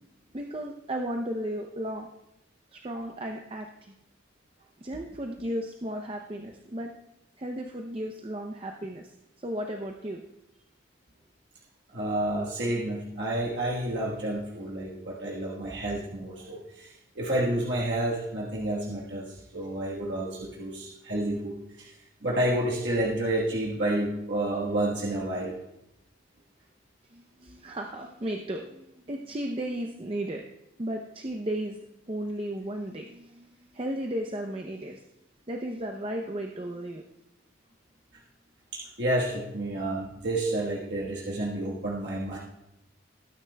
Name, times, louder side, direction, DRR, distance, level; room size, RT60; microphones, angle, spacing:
voice 1, 0.3-2.1 2.7-3.9 4.8-6.9 7.4-9.1 9.4-10.2 27.1-30.4 30.8-31.8 32.1-35.0 35.5-37.0, right 1 dB, 30° right, 3 dB, 0.6 m, -34 dB
voice 2, 11.9-21.9 22.2-25.6 38.7-42.4, right 1 dB, 60° right, -4 dB, 1.4 m, -30 dB
19.0 x 9.7 x 2.2 m, 0.86 s
head